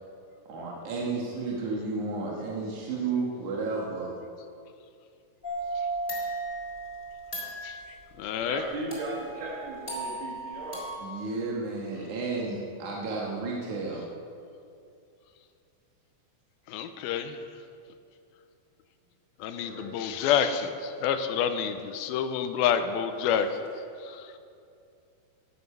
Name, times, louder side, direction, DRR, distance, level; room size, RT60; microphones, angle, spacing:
voice 1, 0.5-4.2 11.0-14.1, right 3 dB, 60° right, -3 dB, 2.5 m, -32 dB
sound 1, 5.4-7.9 8.9-10.9, right 2 dB, 15° left, 3.3 m, -35 dB
voice 2, 7.6-8.6 16.7-17.4 19.4-23.6 24.0-24.3, left 8 dB, 85° left, 9 dB, 2.5 m, -28 dB
voice 3, 8.4-10.8 19.6-20.1 20.3-20.5, right 2 dB, 80° right, -3 dB, 3.5 m, -37 dB
16.0 x 9.9 x 5.6 m, 2.5 s
omnidirectional pair, 4.4 m